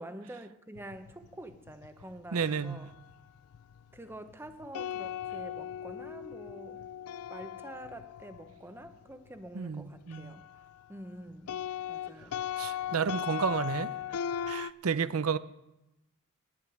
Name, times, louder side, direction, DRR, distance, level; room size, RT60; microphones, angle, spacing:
voice 1, 0.0-2.9 3.9-6.9 7.3-10.6 10.9-11.6 11.9-13.2, right 1 dB, 10° right, 0.8 m, -47 dB
sound 1, 0.7-10.9 11.1-14.7, left 9 dB, 90° left, 0.4 m, -39 dB
voice 2, 2.3-2.8 9.5-10.4 12.6-13.9 14.5-15.4, right 6 dB, 85° right, 0.6 m, -31 dB
10.0 x 8.6 x 9.2 m
head